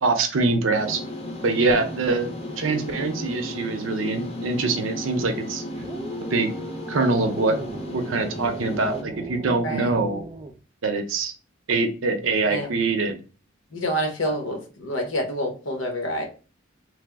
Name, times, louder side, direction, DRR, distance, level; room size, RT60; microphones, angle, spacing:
voice 1, 0.0-1.0 1.4-2.3 2.6-5.6 6.3-6.5 6.9-7.6 7.9-10.2 10.8-11.3 11.7-13.2, right 3 dB, 85° right, 6 dB, 0.6 m, -24 dB
sound 1, 0.7-9.0, left 1 dB, 35° left, 0.6 m, -35 dB
sound 2, 5.8-10.6, right 2 dB, 25° right, 0.3 m, -37 dB
voice 2, 13.7-16.3, equal, 80° left, 2 dB, 1.0 m, -27 dB
3.3 x 2.0 x 3.4 m, 0.35 s
head